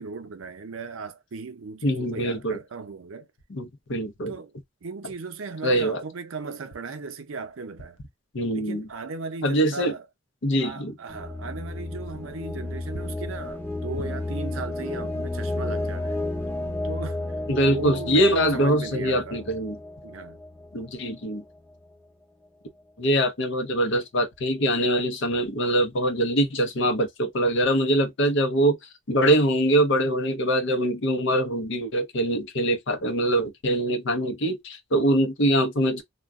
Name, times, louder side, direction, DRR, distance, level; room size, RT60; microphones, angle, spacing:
voice 1, 0.0-3.3 4.3-4.5 4.8-8.0 8.5-10.1 10.6-16.2 16.8-17.2 17.7-19.5 20.0-20.4, right 4 dB, 75° right, 0.6 m, -36 dB
voice 2, 1.8-2.6 3.5-4.3 5.6-6.0 8.3-8.9 9.4-9.9 10.4-10.9 17.5-19.8 20.7-21.4 23.0-28.8 29.1-36.0, right 1 dB, 65° left, 0.7 m, -23 dB
sound 1, 11.1-20.9, left 2 dB, 10° left, 0.6 m, -32 dB
2.3 x 2.2 x 3.5 m
head